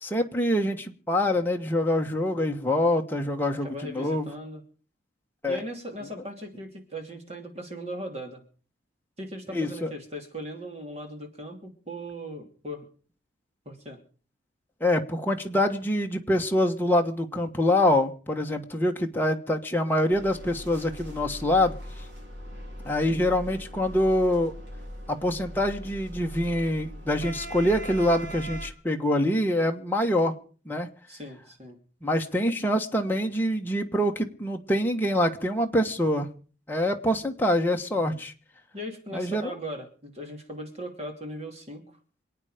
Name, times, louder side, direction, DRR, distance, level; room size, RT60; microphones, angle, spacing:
voice 1, 0.0-4.3 5.4-5.6 9.5-9.9 14.8-21.8 22.8-24.5 25.1-30.3 30.6-30.9 32.0-36.3 36.7-38.3 39.1-39.5, left 1 dB, 10° left, 2 dB, 1.4 m, -25 dB
voice 2, 2.3-2.6 3.5-4.6 5.5-8.4 9.2-12.8 13.6-14.0 31.1-31.8 37.9-38.2 38.7-41.8, equal, 35° right, 4 dB, 3.0 m, -39 dB
sound 1, 20.1-28.7, equal, 70° right, 4.1 m, -40 dB
27.0 x 9.1 x 5.1 m, 0.42 s
head